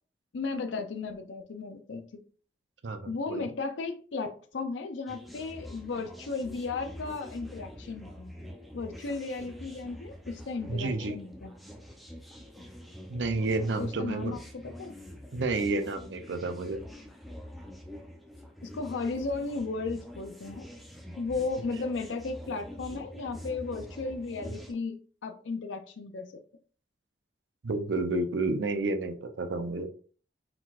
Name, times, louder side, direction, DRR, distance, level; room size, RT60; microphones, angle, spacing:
voice 1, 0.3-2.2 3.1-8.3 8.7-11.6 13.8-14.9 18.6-20.7 21.2-26.4, left 3 dB, 90° left, 0.5 m, -35 dB
voice 2, 2.8-3.5 10.7-11.2 13.1-14.4 15.3-16.8 27.6-29.9, right 2 dB, 80° right, 0.6 m, -30 dB
sound 1, 5.1-24.7, equal, ahead, 0.6 m, -45 dB
4.5 x 3.9 x 2.4 m
head